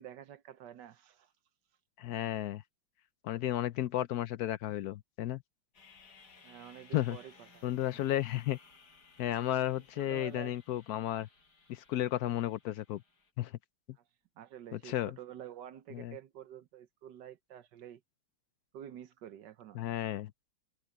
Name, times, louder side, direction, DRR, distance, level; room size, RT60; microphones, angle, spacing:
voice 1, 0.0-1.3 6.4-8.0 10.0-10.6 13.9-14.0 14.4-18.0 18.7-19.8, right 10 dB, 65° right, 1.3 m, -49 dB
voice 2, 2.0-2.6 3.2-5.4 6.9-7.2 7.6-8.6 9.2-11.3 11.7-13.0 13.4-13.6 14.7-15.2 15.9-16.2 19.7-20.3, left 13 dB, 75° left, 0.9 m, -33 dB
sound 1, 5.7-13.3, left 4 dB, 55° left, 6.0 m, -60 dB
omnidirectional pair, 2.1 m